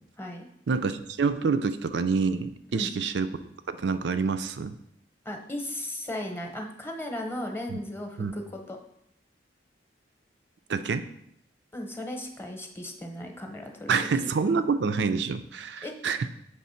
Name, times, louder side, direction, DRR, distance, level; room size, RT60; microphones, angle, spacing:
voice 1, 0.7-3.3 3.7-4.8 7.7-7.8 8.2-8.3 10.7-11.1 13.9-16.3, right 5 dB, 70° right, 11 dB, 0.5 m, -27 dB
voice 2, 5.2-8.4 8.7-8.8 11.7-13.9 15.8-15.9, left 1 dB, 15° left, 3 dB, 0.8 m, -36 dB
7.3 x 3.3 x 5.6 m, 0.76 s
head